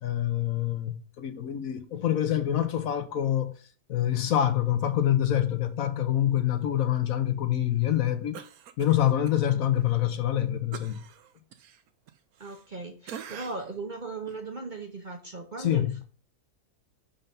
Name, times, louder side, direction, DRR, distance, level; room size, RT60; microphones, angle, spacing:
voice 1, 0.0-3.5 3.9-8.4 8.8-11.0 15.6-15.9, left 11 dB, 65° left, 1.2 m, -26 dB
Cough, 8.3-9.4 9.8-9.9 10.7-12.8 13.1-13.8 14.3-14.4, right 8 dB, 75° right, 1.2 m, -45 dB
voice 2, 12.4-16.0, right 3 dB, 40° right, 0.8 m, -38 dB
5.5 x 5.5 x 5.3 m
omnidirectional pair, 1.6 m